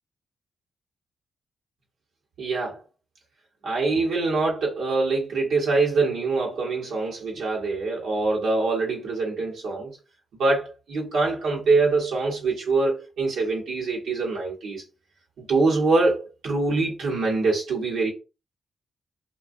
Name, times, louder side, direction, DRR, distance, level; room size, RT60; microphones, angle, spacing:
voice 1, 2.4-2.8 3.6-9.9 10.4-14.8 15.4-18.1, right 3 dB, 80° right, 0.9 m, -24 dB
2.4 x 2.2 x 2.5 m
supercardioid pair, 55°, 0 cm